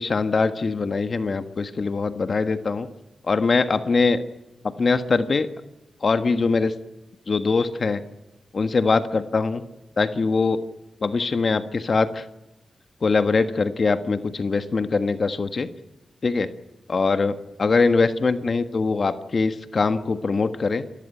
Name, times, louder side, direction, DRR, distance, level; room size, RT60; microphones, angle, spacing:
voice 1, 0.0-2.9 3.3-4.2 4.8-5.5 6.0-6.7 7.3-8.0 8.5-9.6 10.0-10.6 11.0-12.2 13.0-15.7 16.2-16.5 16.9-20.8, left 4 dB, 55° left, 10 dB, 1.5 m, -22 dB
27.5 x 14.0 x 9.1 m, 0.98 s
cardioid pair, 55°, 0 cm